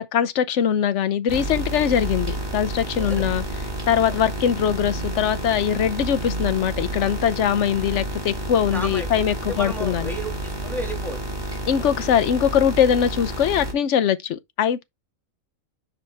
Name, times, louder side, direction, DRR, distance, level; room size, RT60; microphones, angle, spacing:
voice 1, 0.0-3.4 3.9-10.1 11.7-14.8, left 9 dB, 60° left, 1.0 m, -22 dB
sound 1, 1.3-13.7, right 1 dB, 15° right, 1.8 m, -30 dB
voice 2, 3.9-4.2 8.7-11.2, right 1 dB, ahead, 2.1 m, -33 dB
6.0 x 4.9 x 3.5 m
omnidirectional pair, 1.5 m